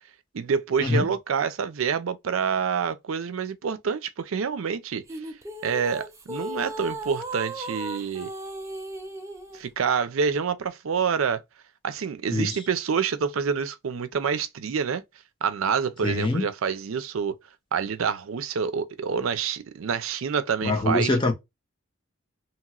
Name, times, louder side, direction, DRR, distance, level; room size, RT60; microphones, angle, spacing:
voice 1, 0.3-5.0 5.6-8.3 9.5-11.4 11.8-15.0 15.4-17.3 17.7-21.2, right 6 dB, 85° right, 0.5 m, -27 dB
sound 1, 5.1-9.6, right 1 dB, 15° right, 0.4 m, -36 dB
voice 2, 16.0-16.5 20.6-21.3, left 2 dB, 25° left, 0.8 m, -24 dB
2.9 x 2.9 x 2.3 m
head